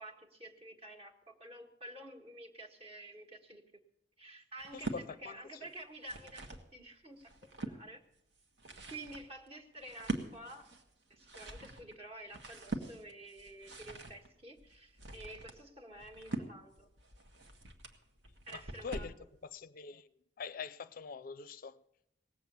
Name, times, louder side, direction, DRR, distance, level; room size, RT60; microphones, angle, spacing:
voice 1, 0.0-3.6 4.2-8.0 8.9-10.7 11.1-16.9 18.5-19.1, right 1 dB, 35° right, 1.5 m, -50 dB
sound 1, 4.6-5.0 5.8-6.7 7.2-7.8 8.4-19.2, right 2 dB, 85° right, 1.5 m, -44 dB
voice 2, 4.7-5.4 18.5-19.1 19.5-20.1 20.4-21.8, left 5 dB, 55° left, 0.4 m, -44 dB
18.5 x 7.9 x 6.8 m
head